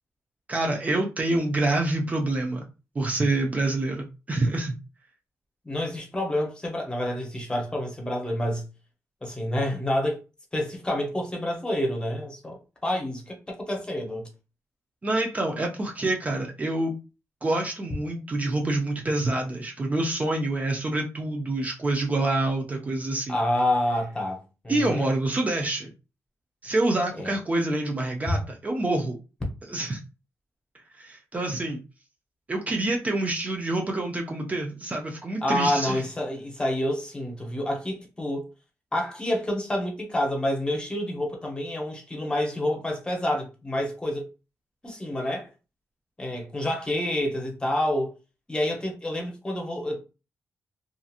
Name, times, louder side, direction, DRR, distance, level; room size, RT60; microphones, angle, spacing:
voice 1, 0.5-2.6 3.0-4.8 15.0-17.0 17.4-23.4 24.7-25.9 26.6-29.2 29.7-30.0 30.9-31.8 32.5-36.0, right 2 dB, 25° right, 0.5 m, -27 dB
voice 2, 5.6-8.6 9.2-10.2 10.5-14.3 23.3-25.1 27.2-27.3 28.3-28.4 35.4-38.5 38.9-44.3 44.8-45.5 46.2-48.1 48.5-50.0, left 1 dB, 15° left, 0.9 m, -28 dB
2.8 x 2.5 x 2.4 m
cardioid pair, 120°, 6 cm